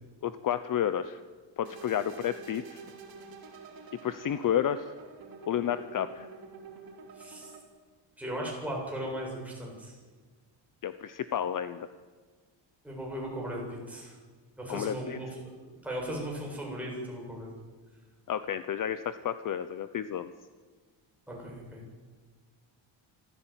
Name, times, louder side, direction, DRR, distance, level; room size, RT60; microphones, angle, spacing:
voice 1, 0.2-1.2 1.6-2.8 4.0-4.9 5.5-6.3 10.8-11.9 14.7-15.2 18.3-20.3, left 9 dB, 45° left, 12 dB, 0.8 m, -31 dB
sound 1, 1.6-7.6, right 4 dB, 50° right, 4.6 m, -48 dB
voice 2, 7.1-7.5 8.2-9.9 12.8-14.2 14.6-15.3 15.7-17.5 21.3-21.8, right 1 dB, 5° right, -3 dB, 7.8 m, -37 dB
25.5 x 15.5 x 9.1 m, 1.4 s
cardioid pair, 165°, 46 cm